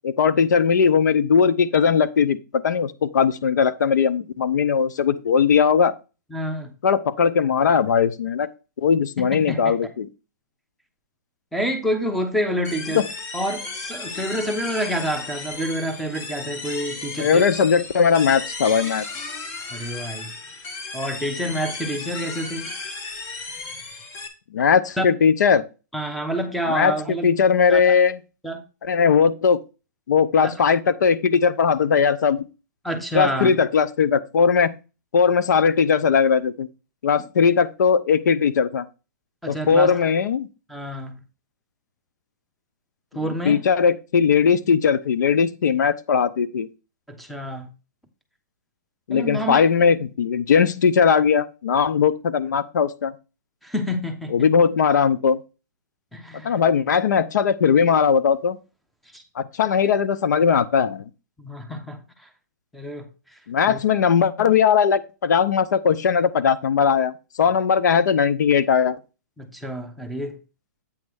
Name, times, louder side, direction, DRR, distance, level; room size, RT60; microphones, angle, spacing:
voice 1, 0.0-5.9 6.8-8.5 8.8-10.1 12.9-13.0 17.2-19.3 24.5-25.7 26.7-28.2 28.8-29.6 30.1-32.4 33.1-34.8 35.1-36.7 37.0-38.8 39.5-40.5 43.2-46.7 49.1-53.1 54.3-55.4 56.4-58.6 59.4-61.0 63.5-69.0, left 6 dB, 75° left, 0.7 m, -19 dB
voice 2, 6.3-6.7 9.2-9.7 11.5-13.0 13.3-17.4 19.7-20.3 20.9-22.7 25.0-25.1 25.9-27.3 27.7-27.9 28.4-28.6 30.4-30.6 32.8-33.5 39.4-40.1 40.7-41.2 43.1-43.6 47.1-47.7 49.1-49.7 53.6-54.3 56.1-56.6 59.1-59.2 61.4-62.0 62.7-63.1 63.7-63.8 69.4-70.4, equal, ahead, 0.9 m, -28 dB
sound 1, 12.6-24.3, left 3 dB, 25° left, 1.2 m, -35 dB
8.6 x 3.2 x 6.3 m
hypercardioid pair, 150°, 10 cm